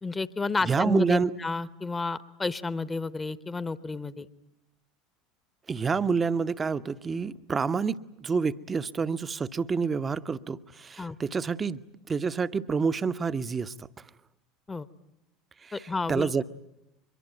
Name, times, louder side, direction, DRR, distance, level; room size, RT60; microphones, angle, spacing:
voice 1, 0.0-4.3 11.0-11.2 14.7-14.9 15.7-16.3, left 3 dB, 15° left, 1.1 m, -31 dB
voice 2, 0.6-1.3 5.7-13.9 15.6-16.4, right 5 dB, 25° right, 0.9 m, -28 dB
24.0 x 22.5 x 9.1 m
figure-of-eight pair, 70°, 0 cm